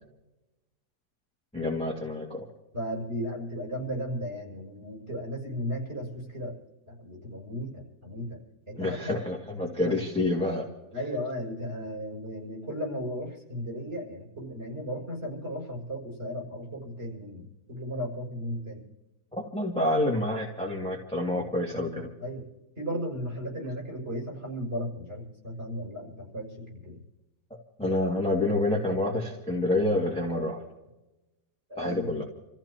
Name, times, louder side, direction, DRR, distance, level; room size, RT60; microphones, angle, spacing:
voice 1, 1.5-2.4 8.8-10.7 19.4-22.1 27.8-30.6 31.8-32.2, left 1 dB, 5° left, -2 dB, 2.0 m, -28 dB
voice 2, 2.7-6.6 6.9-8.4 8.7-9.2 9.8-9.9 10.9-18.8 22.2-22.5 22.8-27.0 31.7-32.1, equal, 40° right, -2 dB, 7.0 m, -35 dB
29.5 x 15.0 x 2.9 m, 1.0 s
omnidirectional pair, 1.8 m